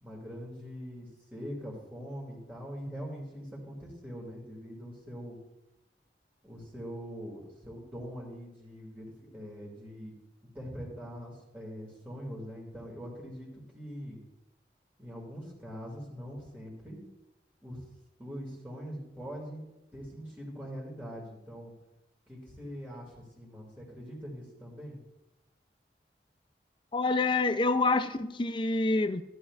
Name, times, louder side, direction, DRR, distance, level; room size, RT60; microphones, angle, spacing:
voice 1, 0.0-5.4 6.4-10.1 10.5-14.2 15.0-17.0 17.6-17.9 18.2-19.7 19.9-21.7 22.3-25.0, equal, 10° right, 2.1 m, -43 dB
voice 2, 26.9-29.2, left 3 dB, 30° left, 0.4 m, -27 dB
14.5 x 11.5 x 2.4 m
head